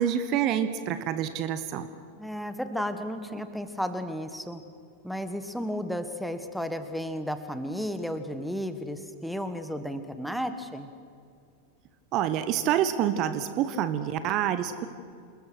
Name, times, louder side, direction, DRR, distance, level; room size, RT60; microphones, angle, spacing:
voice 1, 0.0-1.9 12.1-14.9, right 10 dB, 40° right, 11 dB, 1.1 m, -27 dB
voice 2, 2.2-4.6 5.0-10.9, equal, ahead, 9 dB, 1.5 m, -33 dB
28.0 x 21.0 x 6.3 m, 2.3 s
figure-of-eight pair, 90°, 0 cm